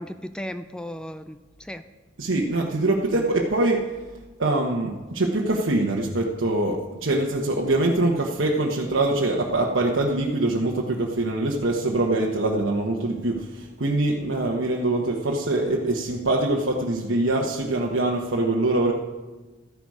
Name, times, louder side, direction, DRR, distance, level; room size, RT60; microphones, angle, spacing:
voice 1, 0.0-1.9, left 1 dB, 5° left, 10 dB, 0.3 m, -36 dB
voice 2, 2.2-3.9 4.4-18.9, right 2 dB, 80° right, -1 dB, 1.1 m, -24 dB
13.0 x 10.5 x 4.9 m, 1.2 s
head